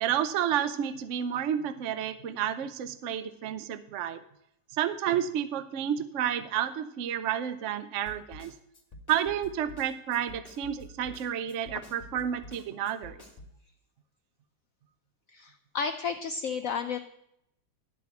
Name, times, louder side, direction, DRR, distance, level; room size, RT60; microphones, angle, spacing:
voice 1, 0.0-4.2 4.7-8.5 9.1-13.2, right 10 dB, 70° right, 12 dB, 0.7 m, -30 dB
Snare drum, 8.1-13.6, left 1 dB, 35° left, 1.2 m, -49 dB
voice 2, 15.3-17.0, left 5 dB, 80° left, 7 dB, 0.7 m, -32 dB
12.0 x 4.2 x 8.1 m, 0.77 s
omnidirectional pair, 2.0 m